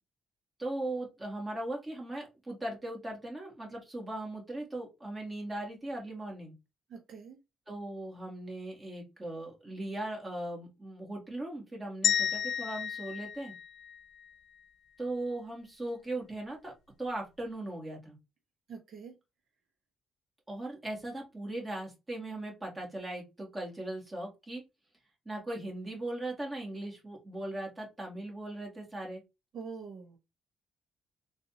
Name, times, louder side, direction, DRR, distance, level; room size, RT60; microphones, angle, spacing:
voice 1, 0.6-6.5 7.7-13.5 15.0-16.7 17.0-18.2 20.5-24.6 25.3-29.2, right 1 dB, 20° right, -1 dB, 2.1 m, -38 dB
voice 2, 6.9-7.4 18.7-19.2 29.5-30.2, right 5 dB, 60° right, 2 dB, 0.9 m, -44 dB
sound 1, 12.0-14.3, left 9 dB, 75° left, 0.3 m, -32 dB
3.9 x 2.6 x 2.8 m, 0.24 s
cardioid pair, 90°, 0 cm